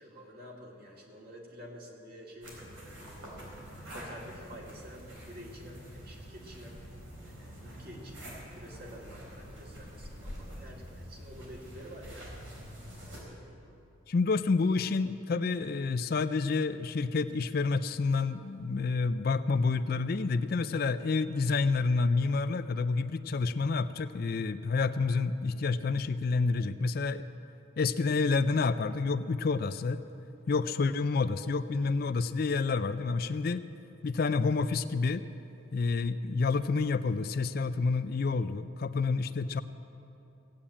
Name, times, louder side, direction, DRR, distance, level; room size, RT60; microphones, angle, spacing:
voice 1, 0.0-3.2 3.8-6.8 7.2-12.4, equal, 45° right, -2 dB, 2.3 m, -49 dB
sound 1, 2.4-13.2, equal, 80° right, 4.4 m, -46 dB
voice 2, 14.1-27.2 27.8-30.0 30.5-33.6 34.0-35.2 35.7-39.6, left 4 dB, 50° left, 11 dB, 0.4 m, -29 dB
16.5 x 8.6 x 8.7 m, 2.8 s
head